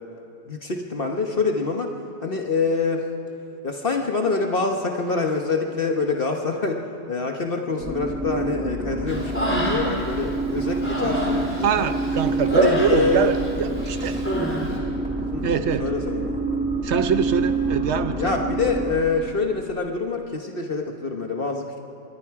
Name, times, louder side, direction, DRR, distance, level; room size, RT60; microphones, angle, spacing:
voice 1, 0.5-1.9 2.2-3.0 3.6-11.9 12.6-13.3 15.3-15.5 15.8-16.4 18.2-21.8, left 4 dB, 50° left, 2 dB, 1.4 m, -25 dB
sound 1, 7.8-19.5, right 2 dB, 5° right, 1.8 m, -27 dB
Human voice, 9.1-10.1 10.5-13.5 13.8-14.6, equal, 10° left, 3.6 m, -27 dB
voice 2, 11.6-14.2 15.4-15.9 16.8-18.3, right 7 dB, 70° right, 10 dB, 1.2 m, -23 dB
25.5 x 21.5 x 4.8 m, 2.6 s
omnidirectional pair, 1.2 m